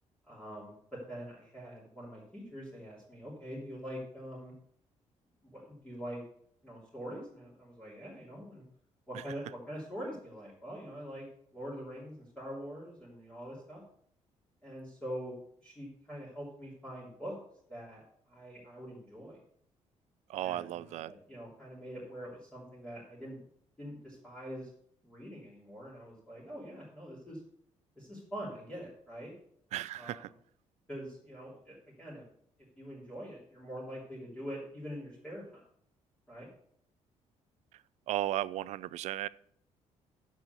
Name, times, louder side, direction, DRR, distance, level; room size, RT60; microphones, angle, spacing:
voice 1, 0.3-4.5 5.4-6.2 6.6-8.6 9.1-11.3 11.5-13.8 14.6-17.4 17.7-18.0 18.3-19.4 20.3-23.4 23.8-24.7 25.0-27.4 28.0-29.3 30.0-30.2 30.9-32.2 32.8-35.6 36.3-36.5, equal, 10° left, -7 dB, 3.1 m, -44 dB
voice 2, 20.3-21.1 29.7-30.3 38.1-39.3, right 14 dB, 65° right, 19 dB, 0.4 m, -35 dB
9.5 x 6.3 x 6.8 m, 0.65 s
cardioid pair, 175°, 12 cm